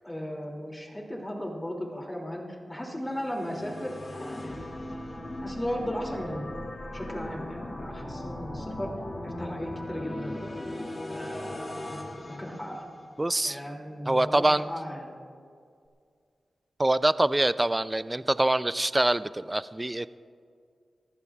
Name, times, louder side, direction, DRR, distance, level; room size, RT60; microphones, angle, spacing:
voice 1, 0.0-4.6 5.4-6.5 6.9-8.9 9.2-10.5 11.1-11.9 12.3-12.9 13.4-15.1, equal, 15° left, 0 dB, 2.6 m, -36 dB
sound 1, 3.1-13.3, left 1 dB, 40° left, 2.5 m, -38 dB
voice 2, 13.2-13.6 14.1-14.7 16.8-20.2, right 1 dB, 20° right, 15 dB, 0.4 m, -25 dB
28.5 x 15.0 x 2.4 m, 2.2 s
wide cardioid pair, 75°, 0 cm